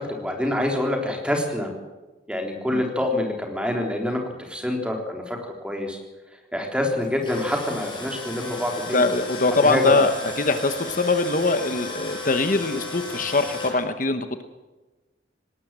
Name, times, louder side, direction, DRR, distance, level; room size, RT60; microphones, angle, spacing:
voice 1, 0.0-1.7 2.3-5.4 5.6-6.0 6.5-9.0 9.6-10.0, left 1 dB, 5° right, 1 dB, 3.6 m, -26 dB
Tools, 7.0-13.7, left 2 dB, 25° left, 5.9 m, -35 dB
voice 2, 8.9-10.1 10.4-14.4, left 3 dB, 45° left, 8 dB, 1.1 m, -22 dB
19.5 x 19.0 x 7.6 m, 1.2 s
head